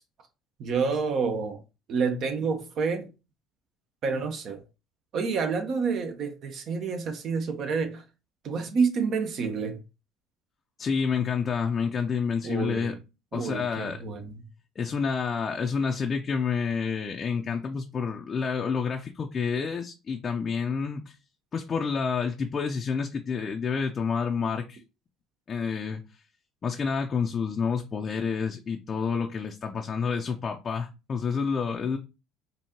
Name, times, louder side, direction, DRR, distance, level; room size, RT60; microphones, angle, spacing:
voice 1, 0.6-1.6 1.9-3.1 4.0-4.6 5.1-8.0 8.4-9.8 12.4-12.9 13.3-14.4, right 5 dB, 55° right, 1.1 m, -28 dB
voice 2, 10.8-13.0 13.3-14.0 14.8-21.1 21.5-24.8 25.5-26.0 26.6-32.0, left 5 dB, 35° left, 0.5 m, -29 dB
4.5 x 2.7 x 2.9 m
hypercardioid pair, 75°, 0 cm